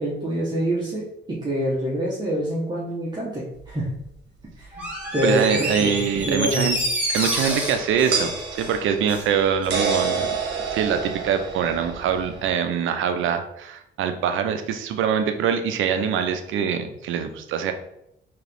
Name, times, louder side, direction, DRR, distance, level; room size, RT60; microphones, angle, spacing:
voice 1, 0.0-3.9 4.5-6.0 6.2-6.8, equal, 20° right, -6 dB, 1.0 m, -26 dB
sound 1, 3.7-3.8 6.2-6.3 8.1-12.5, right 5 dB, 60° right, 1.0 m, -28 dB
Door, 4.7-9.3 9.6-9.7, equal, 5° right, 1.4 m, -28 dB
voice 2, 5.2-6.8 7.1-10.3 10.7-17.7, right 7 dB, 80° right, 8 dB, 0.5 m, -24 dB
3.7 x 2.9 x 3.4 m, 0.80 s
cardioid pair, 90°, 20 cm